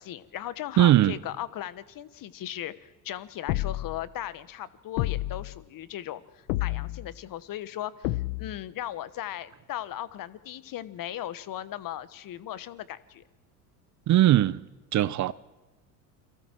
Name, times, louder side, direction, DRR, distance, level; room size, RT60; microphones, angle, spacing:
voice 1, 0.0-13.2, left 12 dB, 45° left, 1.3 m, -37 dB
voice 2, 0.8-1.2 14.1-14.6 14.9-15.3, right 13 dB, 40° right, 0.7 m, -20 dB
sound 1, 3.5-4.1 5.0-5.6 6.5-7.1 8.0-8.6, left 17 dB, 65° left, 1.0 m, -30 dB
29.0 x 23.0 x 4.6 m
hypercardioid pair, 75°, 47 cm